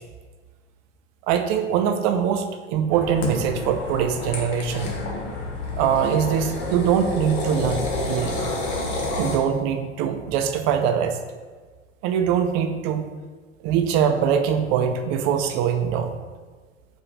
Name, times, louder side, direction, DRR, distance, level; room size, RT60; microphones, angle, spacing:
voice 1, 1.3-4.9 5.8-8.5 9.2-11.2 12.0-13.1 13.6-16.1, right 8 dB, 35° right, 6 dB, 0.4 m, -23 dB
sound 1, 2.9-9.4, left 2 dB, 55° left, 0.9 m, -29 dB
4.6 x 2.4 x 3.9 m, 1.4 s
figure-of-eight pair, 85°, 37 cm